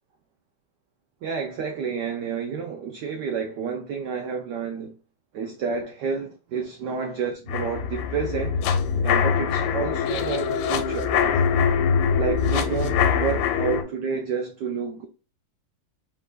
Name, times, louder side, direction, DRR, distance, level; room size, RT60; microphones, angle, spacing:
voice 1, 1.2-5.0 5.3-8.6 9.0-11.6 12.2-15.1, right 6 dB, 70° right, 1.0 m, -30 dB
sound 1, 7.5-13.8, left 6 dB, 85° left, 1.6 m, -23 dB
4.3 x 4.1 x 2.4 m
omnidirectional pair, 2.4 m